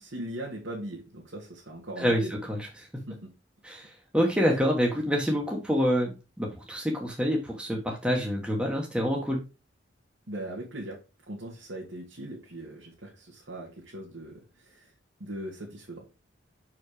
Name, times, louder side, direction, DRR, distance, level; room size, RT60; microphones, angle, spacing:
voice 1, 0.0-2.4 3.1-3.3 10.3-14.9 15.2-16.1, right 1 dB, 70° right, -3 dB, 1.9 m, -40 dB
voice 2, 2.0-2.9 3.6-9.4, equal, 5° right, -1 dB, 1.3 m, -27 dB
6.3 x 4.8 x 4.9 m, 0.29 s
head